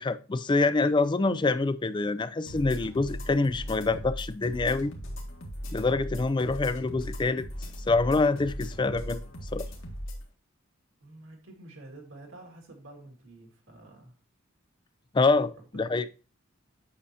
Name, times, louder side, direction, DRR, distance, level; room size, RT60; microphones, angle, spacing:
voice 1, 0.0-4.9 5.7-7.4 7.9-9.2 9.5-9.7 15.1-16.0, left 3 dB, 20° left, 0.4 m, -26 dB
sound 1, 2.5-10.2, equal, 70° left, 1.8 m, -38 dB
voice 2, 11.0-14.2 15.7-15.9, right 2 dB, 70° right, 2.2 m, -49 dB
8.5 x 6.3 x 2.7 m
head